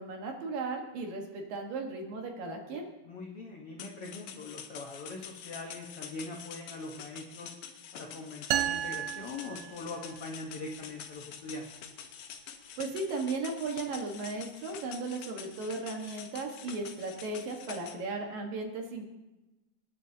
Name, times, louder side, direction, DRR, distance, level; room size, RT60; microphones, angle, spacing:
voice 1, 0.0-2.9 12.8-19.1, right 3 dB, 70° right, 2 dB, 3.0 m, -36 dB
voice 2, 3.0-7.5 7.9-11.7, left 3 dB, 90° left, 0 dB, 1.2 m, -42 dB
sound 1, 3.8-17.9, left 8 dB, 70° left, 2.4 m, -47 dB
sound 2, 8.5-10.3, right 12 dB, 85° right, 1.8 m, -33 dB
26.5 x 10.5 x 2.8 m, 1.0 s
omnidirectional pair, 4.4 m